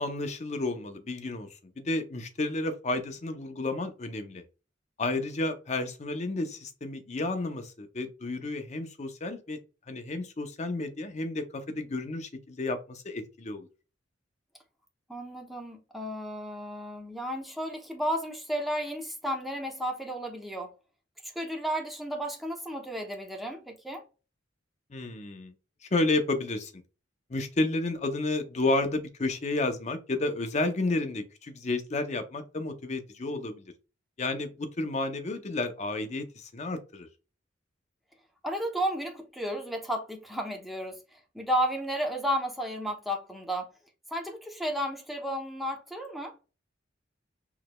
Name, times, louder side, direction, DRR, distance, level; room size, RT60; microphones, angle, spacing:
voice 1, 0.0-1.5 1.8-4.4 5.0-9.6 9.9-13.7 24.9-25.5 25.9-26.7 27.3-33.6 34.2-37.1, left 2 dB, 35° left, 0.6 m, -31 dB
voice 2, 15.1-20.7 21.2-24.0 38.4-43.7 44.1-46.4, equal, ahead, 0.7 m, -33 dB
4.7 x 3.1 x 2.2 m
head